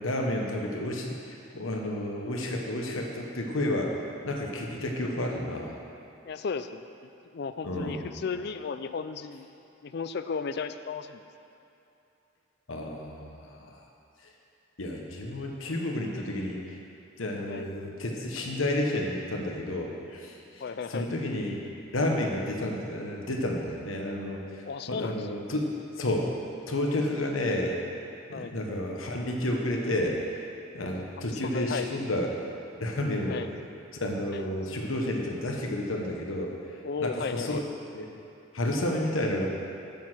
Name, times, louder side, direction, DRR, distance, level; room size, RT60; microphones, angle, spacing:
voice 1, 0.0-3.9 4.2-5.7 7.6-8.1 12.7-13.7 14.8-16.8 17.2-21.6 21.9-24.6 24.9-25.7 26.0-26.3 26.7-27.8 28.3-30.4 30.7-32.3 32.8-33.4 34.0-36.5 37.0-37.6 37.9-38.1 38.5-39.5, left 1 dB, 90° left, 0 dB, 1.2 m, -31 dB
voice 2, 6.3-6.9 7.3-9.5 9.8-11.2 17.4-17.7 20.6-21.1 24.6-25.4 28.3-28.5 31.3-31.9 33.3-33.5 34.3-34.5 36.8-37.6, left 5 dB, 55° left, 10 dB, 0.4 m, -34 dB
7.7 x 7.1 x 6.2 m, 2.8 s
head